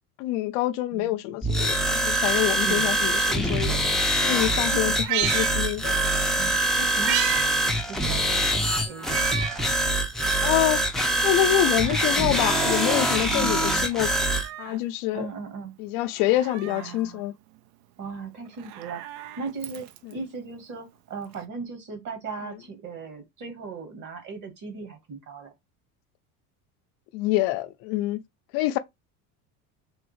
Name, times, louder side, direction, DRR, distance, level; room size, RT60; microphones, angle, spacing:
voice 1, 0.2-3.8 4.2-6.1 10.4-10.8 11.2-14.3 14.6-15.3 15.8-17.3 27.1-28.2 28.5-28.8, left 14 dB, 65° left, 0.6 m, -26 dB
sound 1, 1.4-14.5, right 1 dB, ahead, 0.5 m, -24 dB
voice 2, 2.6-3.1 4.7-4.9 6.4-9.2 13.3-13.9 15.1-15.7 16.6-17.3 18.0-25.5, right 4 dB, 45° right, 1.4 m, -38 dB
Meow, 4.9-6.3 6.6-7.5 7.8-7.9 9.0-9.7 10.2-10.3 11.3-12.3 13.8-14.8 16.2-17.0 18.5-20.1 21.3-21.4, right 13 dB, 65° right, 0.6 m, -33 dB
3.5 x 2.0 x 3.0 m
supercardioid pair, 90°, 44 cm